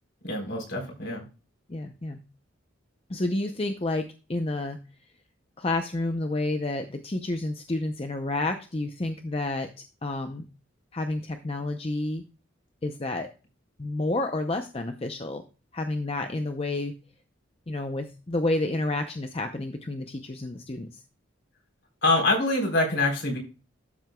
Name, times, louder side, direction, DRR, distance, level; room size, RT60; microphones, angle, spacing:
voice 1, 0.2-1.2 22.0-23.4, left 2 dB, 60° left, 2 dB, 3.9 m, -25 dB
voice 2, 1.7-2.2 3.1-4.0 4.3-4.8 5.6-9.7 10.0-10.4 10.9-12.2 12.8-13.3 13.8-15.4 15.7-16.9 17.7-21.0, left 2 dB, 30° left, 6 dB, 0.6 m, -30 dB
12.5 x 7.7 x 2.3 m, 0.33 s
head